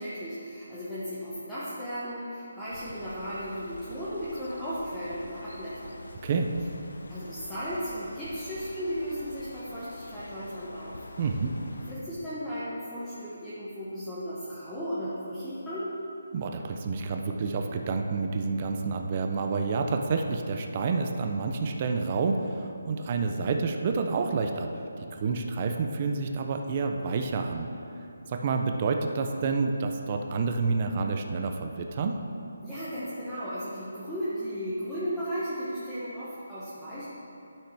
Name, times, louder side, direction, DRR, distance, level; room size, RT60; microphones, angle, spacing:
voice 1, 0.0-6.0 7.1-11.1 11.9-15.9 32.6-37.0, equal, ahead, -15 dB, 0.9 m, -35 dB
Bird, 2.7-11.9, left 2 dB, 80° left, 0.7 m, -46 dB
voice 2, 11.2-11.5 16.3-24.7 25.1-27.7 28.3-32.2, right 4 dB, 25° right, 4 dB, 0.4 m, -29 dB
11.5 x 5.9 x 3.4 m, 2.7 s
hypercardioid pair, 170°, 0 cm